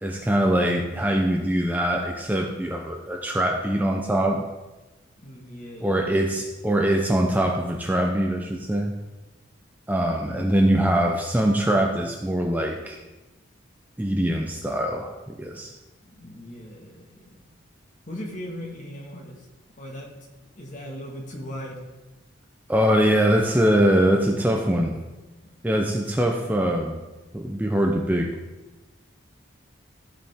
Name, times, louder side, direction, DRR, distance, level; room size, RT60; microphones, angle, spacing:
voice 1, 0.0-4.4 5.8-8.9 9.9-13.0 14.0-15.7 22.7-25.0 25.6-27.0 27.3-28.3, right 1 dB, 10° right, 1 dB, 0.6 m, -23 dB
voice 2, 5.2-6.4 10.2-10.7 16.1-17.4 18.1-19.5 19.8-20.1 20.5-21.8 25.4-25.6, equal, 40° left, 0 dB, 1.6 m, -39 dB
14.5 x 5.0 x 3.5 m, 1.1 s
head